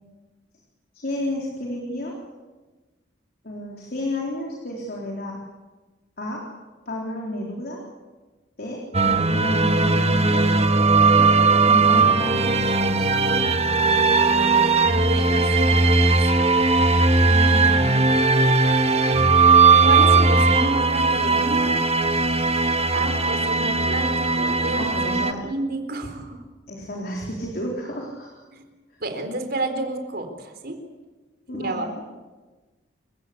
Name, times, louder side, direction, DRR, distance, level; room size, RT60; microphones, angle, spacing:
voice 1, 0.9-2.1 3.4-5.4 6.2-6.5 6.9-7.8 8.6-10.5 11.1-11.4 11.7-13.2 17.2-18.0 24.8-25.4 26.7-28.4 31.5-32.0, left 1 dB, 55° left, -1 dB, 4.0 m, -31 dB
sound 1, 8.9-25.3, right 3 dB, 35° right, 1.6 m, -18 dB
voice 2, 14.8-15.9 19.8-21.8 22.9-26.4 28.5-28.6 29.0-30.8 31.5-31.9, right 2 dB, 60° right, 6 dB, 4.1 m, -30 dB
29.0 x 16.0 x 8.6 m, 1.2 s
head